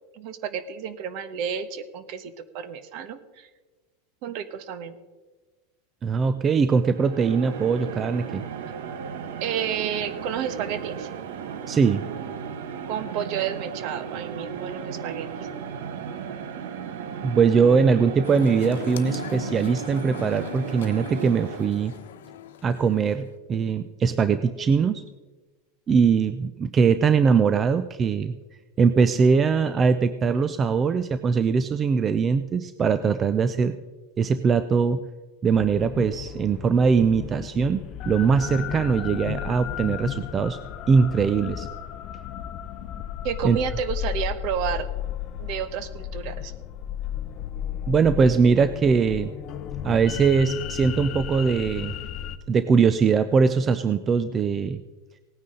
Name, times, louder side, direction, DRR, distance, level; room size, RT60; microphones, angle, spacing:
voice 1, 0.1-3.5 4.2-4.9 9.4-11.1 12.9-15.5 43.2-44.9 45.4-46.5, right 8 dB, 50° right, 12 dB, 1.1 m, -31 dB
voice 2, 6.0-8.4 11.7-12.0 17.2-21.9 22.6-25.0 25.9-28.4 28.8-33.8 34.2-35.0 35.4-40.6 40.9-41.7 43.4-43.6 47.9-49.3 49.8-51.9 52.5-54.8, right 5 dB, 20° right, 11 dB, 0.5 m, -21 dB
sound 1, 6.8-22.1, right 7 dB, 75° right, 1.1 m, -35 dB
sound 2, 18.2-23.3, left 7 dB, 90° left, 1.1 m, -38 dB
sound 3, 35.5-52.4, left 10 dB, 35° left, 0.6 m, -34 dB
18.0 x 9.6 x 3.9 m, 1.2 s
supercardioid pair, 150°, 0 cm